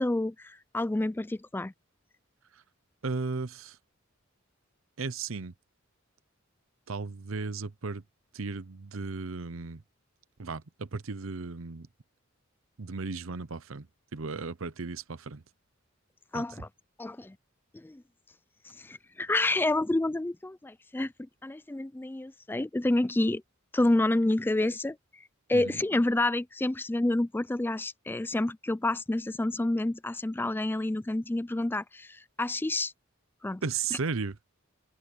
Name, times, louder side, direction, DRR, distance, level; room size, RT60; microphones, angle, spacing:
voice 1, 0.0-1.7 16.3-16.7 17.0-17.4 17.7-18.0 18.8-21.1 21.4-23.4 23.7-25.0 25.5-32.9 33.4-33.6, left 2 dB, 10° left, 0.4 m, -28 dB
voice 2, 3.0-3.8 5.0-5.5 6.9-8.0 8.3-9.8 10.4-11.9 12.8-13.9 14.1-15.4 16.3-16.5 25.5-25.8 33.6-34.4, right 4 dB, 75° right, 0.8 m, -35 dB
open air
head